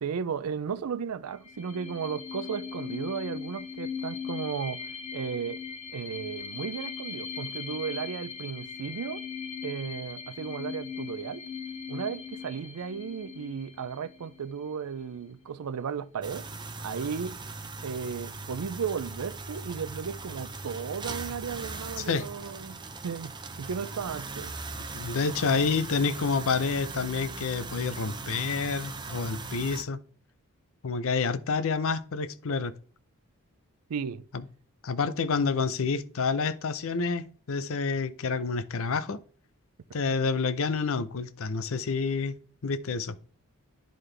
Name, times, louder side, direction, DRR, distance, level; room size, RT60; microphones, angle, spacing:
voice 1, 0.0-4.8 5.1-5.6 5.9-9.2 9.6-11.4 11.9-16.5 16.8-17.4 17.8-23.3 23.6-24.6 25.4-25.5 33.9-34.2, right 6 dB, 75° right, 0.4 m, -35 dB
sound 1, 1.4-14.7, left 6 dB, 30° left, 1.8 m, -39 dB
sound 2, 16.2-29.8, right 3 dB, 20° right, 0.6 m, -39 dB
voice 2, 24.9-30.0 30.8-32.7 34.3-34.4 34.8-39.2 39.9-42.3 42.6-43.2, left 4 dB, 65° left, 0.6 m, -28 dB
11.0 x 3.9 x 3.3 m
head